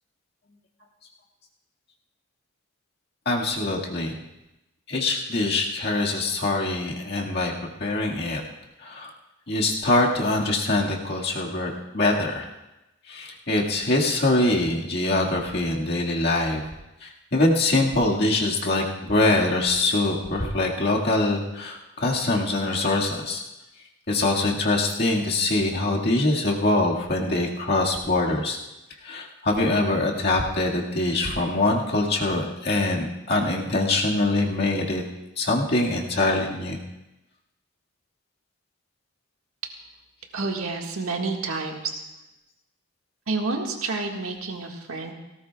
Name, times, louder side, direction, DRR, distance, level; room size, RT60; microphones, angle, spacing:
voice 1, 3.3-4.2 4.9-7.5 7.8-8.4 8.8-9.1 9.5-12.5 13.1-16.6 17.0-23.4 24.1-28.6 29.0-35.0 35.4-36.8, left 2 dB, 45° left, -2 dB, 1.9 m, -23 dB
voice 2, 40.3-42.0 43.3-45.1, right 3 dB, 75° right, 1 dB, 1.7 m, -29 dB
18.0 x 17.5 x 2.3 m, 0.96 s
head